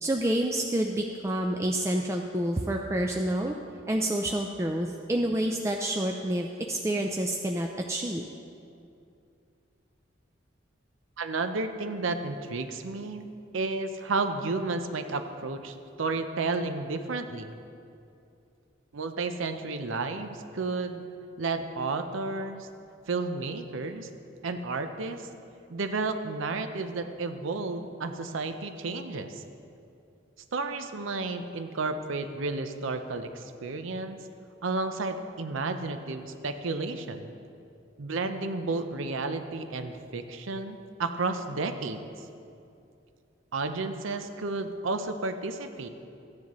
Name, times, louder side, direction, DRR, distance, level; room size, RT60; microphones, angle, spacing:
voice 1, 0.0-3.6 3.9-8.3, right 1 dB, 15° right, 1 dB, 0.3 m, -28 dB
voice 2, 11.2-13.3 13.5-17.5 18.9-21.0 21.4-22.7 23.1-24.1 24.4-25.2 25.7-29.4 30.5-34.2 34.6-37.3 38.0-42.0 43.5-45.9, right 3 dB, 80° right, 8 dB, 0.6 m, -32 dB
14.5 x 9.6 x 3.1 m, 2.6 s
head